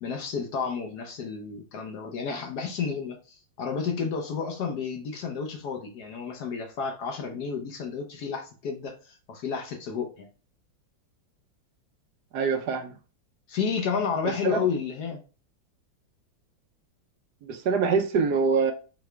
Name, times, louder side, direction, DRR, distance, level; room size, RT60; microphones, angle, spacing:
voice 1, 0.0-10.3 13.5-15.2, left 6 dB, 65° left, 1.0 m, -31 dB
voice 2, 12.3-12.9 14.2-14.6 17.5-18.7, right 5 dB, 70° right, 1.0 m, -24 dB
4.8 x 2.3 x 3.2 m
omnidirectional pair, 2.2 m